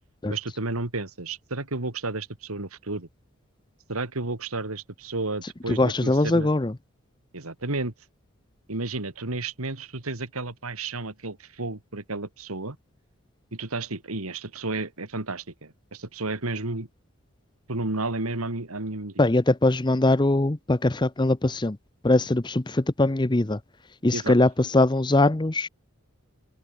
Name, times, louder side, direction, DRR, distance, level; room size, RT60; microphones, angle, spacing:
voice 1, 0.3-3.1 3.9-6.5 7.3-7.9 8.7-12.8 13.5-16.9 17.7-19.3 24.1-24.4, right 2 dB, 90° right, 2.4 m, -32 dB
voice 2, 5.7-6.7 19.2-21.8 22.0-23.6 24.0-25.7, left 2 dB, 20° left, 0.7 m, -21 dB
open air
head